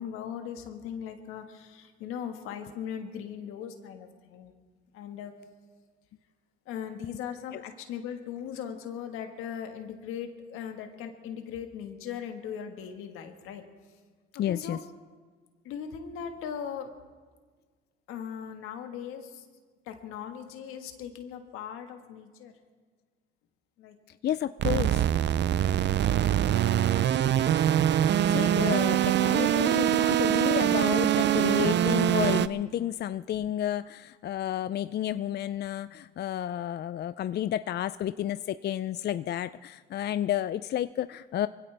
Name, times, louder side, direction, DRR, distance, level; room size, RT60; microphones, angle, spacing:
voice 1, 0.0-4.5 4.9-5.4 6.6-13.6 14.5-14.8 15.6-16.9 18.1-19.5 19.8-22.5 23.8-24.0 28.9-29.3, left 8 dB, 90° left, 5 dB, 1.6 m, -39 dB
voice 2, 14.4-14.8 24.2-25.1 28.3-41.5, left 11 dB, 55° left, 14 dB, 0.4 m, -31 dB
sound 1, 24.6-32.5, right 11 dB, 60° right, 0.5 m, -24 dB
23.0 x 16.5 x 3.4 m, 1.5 s
supercardioid pair, 70°, 21 cm